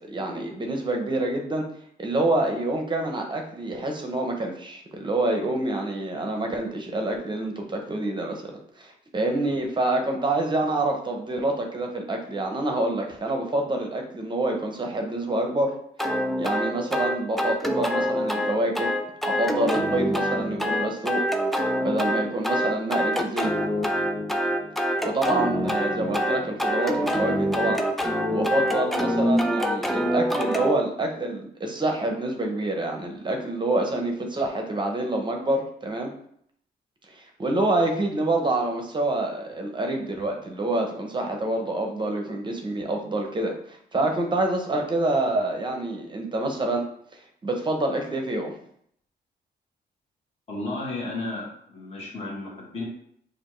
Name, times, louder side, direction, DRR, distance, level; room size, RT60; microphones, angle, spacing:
voice 1, 0.1-1.7 2.0-8.5 8.8-15.7 16.4-18.9 19.3-21.2 21.8-23.5 25.0-27.8 28.3-36.1 37.1-46.9 47.4-48.5, right 2 dB, 25° right, 2 dB, 0.7 m, -27 dB
sound 1, 16.0-30.8, equal, ahead, 0.3 m, -25 dB
voice 2, 50.5-52.8, left 2 dB, 35° left, -3 dB, 1.5 m, -33 dB
6.5 x 2.5 x 3.1 m, 0.67 s
wide cardioid pair, 150°, 18 cm